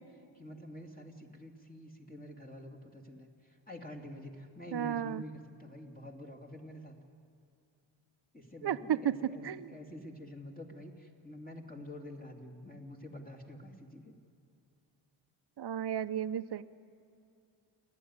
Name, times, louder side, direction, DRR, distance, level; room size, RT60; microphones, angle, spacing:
voice 1, 0.0-6.9 8.3-14.1, left 1 dB, 20° left, 1 dB, 2.5 m, -48 dB
voice 2, 4.7-5.2 8.6-9.7 15.6-16.6, right 10 dB, 55° right, 13 dB, 0.8 m, -33 dB
29.0 x 11.0 x 9.6 m, 2.6 s
cardioid pair, 65°, 48 cm